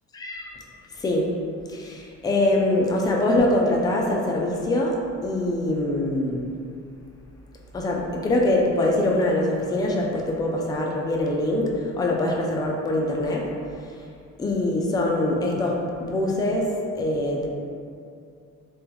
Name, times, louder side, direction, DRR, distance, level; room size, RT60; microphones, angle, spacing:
voice 1, 0.1-0.5 0.9-1.3 1.7-6.5 7.7-13.5 14.4-17.5, left 1 dB, 15° left, -1 dB, 0.3 m, -23 dB
3.2 x 2.3 x 2.2 m, 2.4 s
cardioid pair, 90°, 31 cm